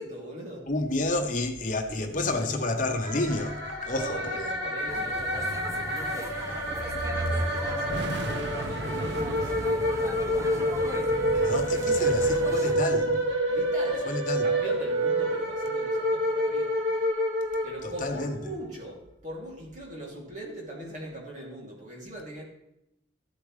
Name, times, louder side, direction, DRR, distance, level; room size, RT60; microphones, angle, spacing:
voice 1, 0.0-0.7 1.9-2.5 3.9-6.6 7.3-10.8 11.7-12.1 12.6-12.7 13.5-14.1 14.4-17.0 17.6-22.4, right 1 dB, 40° right, 2.8 m, -42 dB
voice 2, 0.7-4.5 11.3-13.2 14.1-14.5 17.8-18.4, left 2 dB, 45° left, 1.0 m, -30 dB
sound 1, 3.0-18.3, equal, 85° right, 2.2 m, -28 dB
sound 2, 4.9-12.7, right 1 dB, 15° right, 0.7 m, -36 dB
sound 3, 7.3-7.4 7.9-13.3, right 2 dB, 70° right, 0.6 m, -38 dB
14.0 x 7.8 x 3.3 m
head